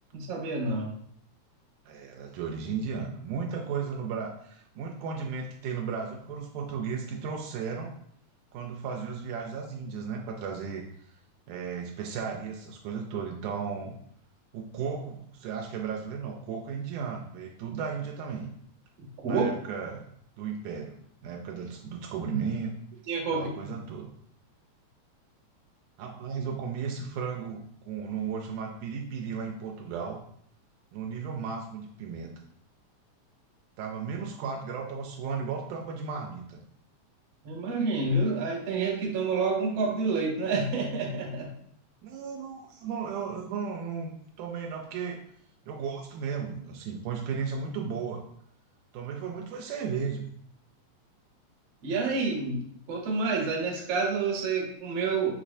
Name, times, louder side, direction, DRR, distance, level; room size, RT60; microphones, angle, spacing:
voice 1, 0.1-0.9 19.2-19.5 23.1-23.7 37.4-41.5 51.8-55.3, right 3 dB, 65° right, 0 dB, 1.8 m, -28 dB
voice 2, 1.9-7.9 8.5-10.8 11.5-13.9 14.5-18.5 19.3-20.0 20.4-20.9 21.2-22.7 23.3-24.1 26.0-30.2 30.9-32.3 33.8-36.6 42.0-45.2 45.7-48.3 48.9-50.4, right 6 dB, 80° right, 1 dB, 2.0 m, -35 dB
6.4 x 3.1 x 2.6 m, 0.66 s
omnidirectional pair, 3.4 m